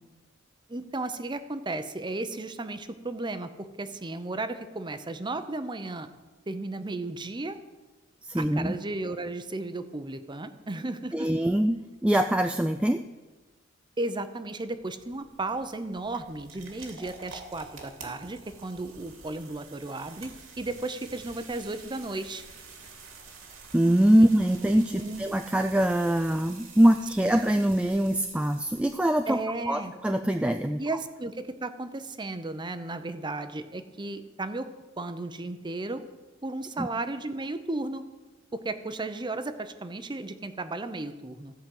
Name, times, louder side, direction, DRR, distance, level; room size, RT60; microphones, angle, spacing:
voice 1, 0.7-6.1 6.5-7.6 8.3-11.3 14.0-22.4 24.2-24.3 24.9-25.2 27.2-27.4 29.3-29.9 30.8-34.7 35.0-36.0 36.4-38.0 38.5-41.5, right 2 dB, 25° right, 10 dB, 0.7 m, -34 dB
voice 2, 8.2-8.8 11.1-13.0 23.7-29.4 29.7-30.8 36.8-36.9, right 1 dB, 5° right, 6 dB, 0.3 m, -23 dB
sound 1, 14.6-29.5, right 4 dB, 85° right, 2.5 m, -48 dB
15.0 x 5.1 x 7.7 m, 1.2 s
head